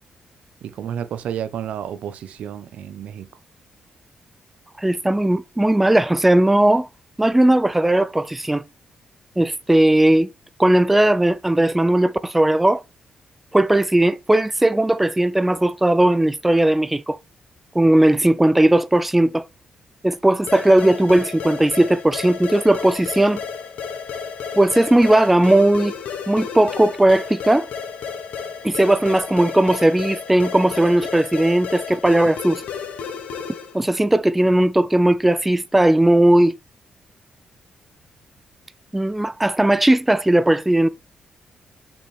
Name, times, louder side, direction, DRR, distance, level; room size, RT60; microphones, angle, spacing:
voice 1, 0.6-3.3, right 9 dB, 80° right, 0.8 m, -31 dB
voice 2, 4.8-6.9 7.2-8.6 9.4-10.3 10.6-12.8 13.5-17.2 17.7-19.5 20.0-23.4 24.5-25.9 26.3-27.7 28.6-32.6 33.7-36.5 38.9-40.9, right 1 dB, 5° right, 0.3 m, -17 dB
sound 1, 20.5-33.8, left 6 dB, 80° left, 1.3 m, -32 dB
7.1 x 5.5 x 3.5 m
cardioid pair, 130°, 2 cm